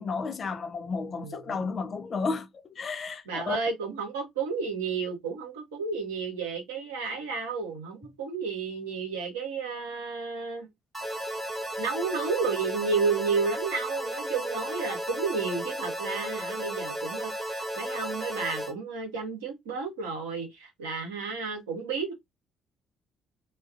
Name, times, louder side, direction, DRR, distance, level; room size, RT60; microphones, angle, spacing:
voice 1, 0.0-3.6, left 4 dB, 40° left, 0.4 m, -32 dB
voice 2, 1.0-1.5 3.3-10.7 11.8-22.1, right 4 dB, 75° right, 0.8 m, -32 dB
sound 1, 10.9-18.7, right 1 dB, 15° right, 1.0 m, -34 dB
2.3 x 2.2 x 2.4 m
figure-of-eight pair, 45°, 0 cm